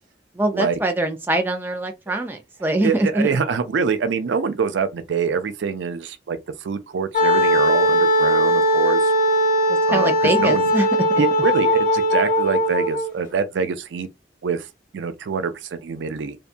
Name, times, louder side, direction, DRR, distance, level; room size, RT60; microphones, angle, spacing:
voice 1, 0.4-3.3 9.7-10.9, right 1 dB, 10° right, 0.4 m, -23 dB
voice 2, 2.8-9.1 9.9-10.7 11.2-14.1 14.4-14.7 14.9-16.4, right 5 dB, 80° right, 0.4 m, -25 dB
Wind instrument woodwind instrument, 7.1-13.1, equal, 45° left, 0.6 m, -19 dB
2.7 x 2.2 x 2.5 m
head